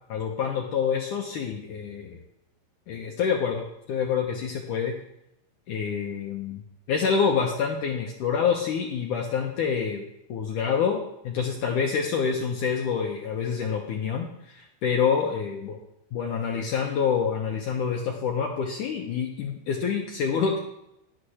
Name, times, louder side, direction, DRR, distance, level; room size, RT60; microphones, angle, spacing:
voice 1, 0.1-2.2 2.9-5.0 5.7-6.6 6.9-10.0 10.3-15.8 16.1-20.6, left 6 dB, 75° left, 0 dB, 1.9 m, -27 dB
10.0 x 6.7 x 6.4 m, 0.82 s
omnidirectional pair, 4.9 m